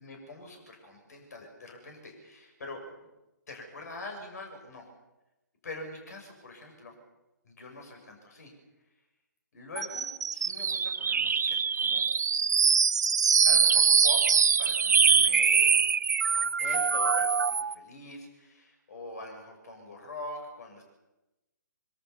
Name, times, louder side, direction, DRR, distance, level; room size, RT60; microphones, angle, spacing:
voice 1, 0.0-2.8 3.5-4.8 5.6-6.9 7.4-8.5 9.5-12.0 13.4-14.2 14.6-15.7 16.4-20.8, left 2 dB, 55° left, 3 dB, 6.6 m, -44 dB
sound 1, 9.8-17.7, right 6 dB, 60° right, 1.1 m, -24 dB
24.0 x 23.5 x 7.0 m, 1.0 s
figure-of-eight pair, 135°, 10 cm